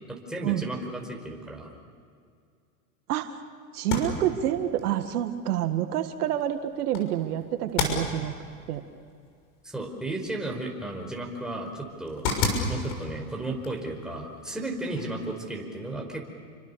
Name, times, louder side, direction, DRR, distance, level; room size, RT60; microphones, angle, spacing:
voice 1, 0.1-1.7 9.6-12.2 12.7-16.2, right 2 dB, ahead, 0 dB, 5.0 m, -34 dB
voice 2, 3.1-3.4 3.7-8.3 8.7-8.8, right 11 dB, 75° right, 8 dB, 1.9 m, -28 dB
sound 1, 3.7-15.4, left 4 dB, 50° left, 6.6 m, -35 dB
29.0 x 25.0 x 7.0 m, 2.2 s
hypercardioid pair, 120°, 46 cm